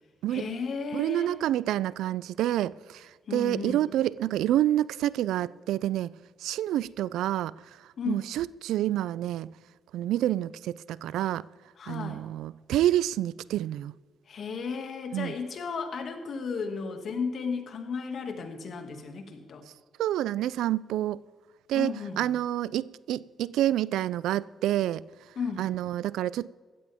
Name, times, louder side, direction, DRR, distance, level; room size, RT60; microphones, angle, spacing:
voice 1, 0.3-1.3 3.3-3.9 8.0-8.2 11.8-12.2 14.3-19.6 21.7-22.3 25.4-25.7, left 5 dB, 60° left, 2.2 m, -34 dB
voice 2, 0.9-6.1 6.4-7.5 8.1-9.5 9.9-11.4 11.9-13.9 15.1-15.3 20.0-21.2 21.7-25.0 25.6-26.5, right 13 dB, 85° right, 0.3 m, -28 dB
16.5 x 14.0 x 3.6 m
cardioid pair, 75°, 0 cm